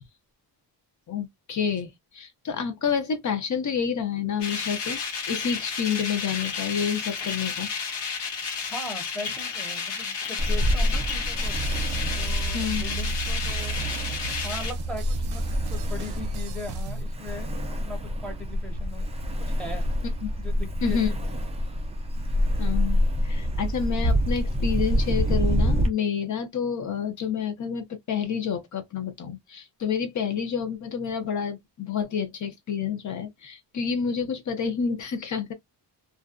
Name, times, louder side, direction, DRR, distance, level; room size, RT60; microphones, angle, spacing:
voice 1, 1.1-5.0 5.3-7.7 12.5-12.8 20.2-20.3 20.8-21.1 22.6-35.5, left 7 dB, 40° left, 0.6 m, -29 dB
sound 1, 4.4-14.7, left 5 dB, 70° left, 0.9 m, -32 dB
voice 2, 8.6-11.6 12.2-13.9 14.4-15.4 15.7-19.9 20.4-21.2, left 2 dB, ahead, 0.7 m, -39 dB
Ocean, 10.4-25.9, equal, 15° right, 0.3 m, -27 dB
sound 2, 11.5-17.0, right 5 dB, 70° right, 0.6 m, -34 dB
2.5 x 2.1 x 2.4 m
wide cardioid pair, 165°, 44 cm